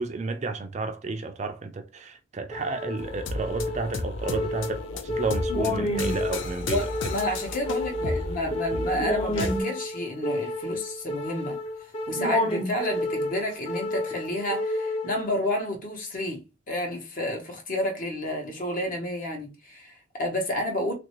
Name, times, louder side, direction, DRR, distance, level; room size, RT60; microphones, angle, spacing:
voice 1, 0.0-6.8, right 3 dB, 35° right, 0.4 m, -32 dB
sound 1, 2.5-15.5, left 1 dB, 30° left, 0.6 m, -30 dB
sound 2, 3.0-9.6, left 2 dB, 75° left, 0.5 m, -34 dB
voice 2, 6.6-11.6 12.1-20.9, left 1 dB, 45° left, 1.0 m, -30 dB
3.2 x 2.6 x 3.0 m
head